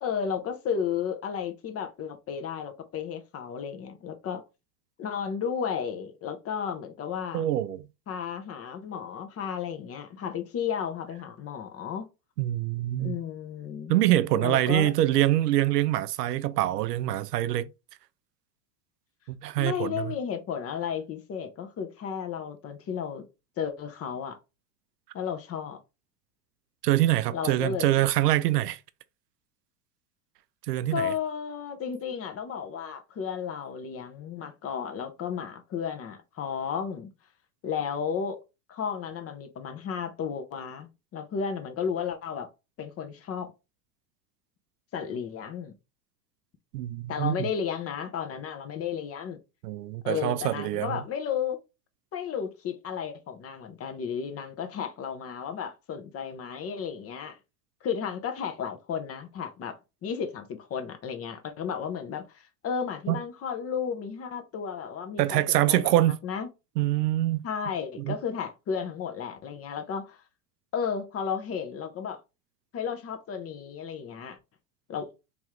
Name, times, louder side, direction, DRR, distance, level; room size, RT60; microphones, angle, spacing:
voice 1, 0.0-4.4 5.0-7.4 8.1-12.1 13.0-13.9 14.3-14.9 19.6-23.2 23.6-24.4 25.1-25.8 27.3-28.1 30.9-37.1 37.6-38.4 38.7-42.5 42.8-43.5 44.9-45.7 47.1-49.4 50.0-51.6 52.1-57.4 57.8-65.9 66.2-66.5 67.4-70.2 70.7-72.2 72.7-74.4 74.9-75.1, left 7 dB, 30° left, 0.8 m, -33 dB
voice 2, 7.3-7.9 12.4-13.2 13.9-17.7 19.3-20.1 26.8-28.8 30.7-31.1 46.7-47.4 49.6-51.0 63.1-63.2 65.2-66.2 66.8-67.4 68.0-68.2, right 14 dB, 80° right, 0.6 m, -25 dB
3.6 x 3.0 x 3.0 m
hypercardioid pair, 95°, 47 cm